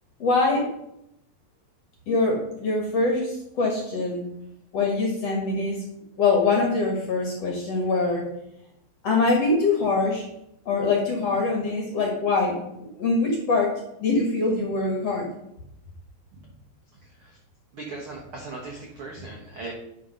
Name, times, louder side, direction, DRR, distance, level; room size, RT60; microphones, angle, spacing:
voice 1, 0.2-0.7 2.1-4.3 4.7-5.8 6.2-8.2 9.0-10.3 10.7-13.7 14.0-15.2, left 3 dB, 55° left, 0 dB, 1.9 m, -23 dB
voice 2, 16.9-17.4 17.7-19.7, right 3 dB, 70° right, -2 dB, 1.2 m, -38 dB
11.0 x 4.6 x 5.6 m, 0.82 s
omnidirectional pair, 4.8 m